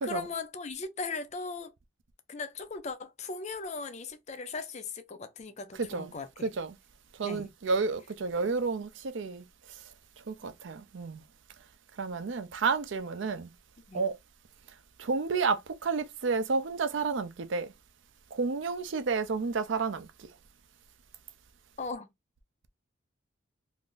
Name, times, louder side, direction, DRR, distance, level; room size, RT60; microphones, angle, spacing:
voice 1, 0.0-1.7 2.3-6.5 7.2-7.5 13.9-14.1 21.8-22.1, left 4 dB, 35° left, 0.4 m, -38 dB
voice 2, 5.8-6.1 6.4-6.8 7.2-9.4 10.3-11.2 12.0-13.5 13.9-14.1 15.0-17.7 18.3-20.1, right 4 dB, 65° right, 0.5 m, -31 dB
2.6 x 2.5 x 3.6 m
head